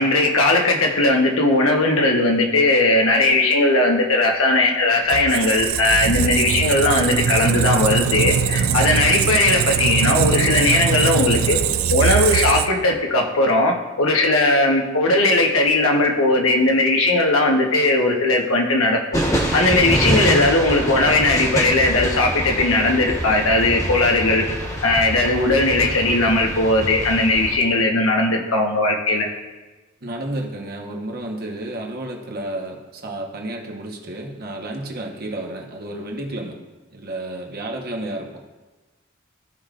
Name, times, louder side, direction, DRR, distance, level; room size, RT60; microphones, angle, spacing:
voice 1, 0.0-11.6 11.9-19.0 19.5-24.4 24.8-29.3, left 2 dB, 85° left, 1 dB, 1.2 m, -18 dB
Squeak, 5.1-12.9, right 7 dB, 90° right, 0.4 m, -21 dB
sound 1, 19.1-27.6, equal, 15° left, 1.2 m, -25 dB
voice 2, 20.0-20.4 30.0-36.6 36.9-38.4, right 1 dB, 50° right, 1 dB, 1.2 m, -31 dB
15.5 x 5.1 x 2.5 m, 1.2 s
head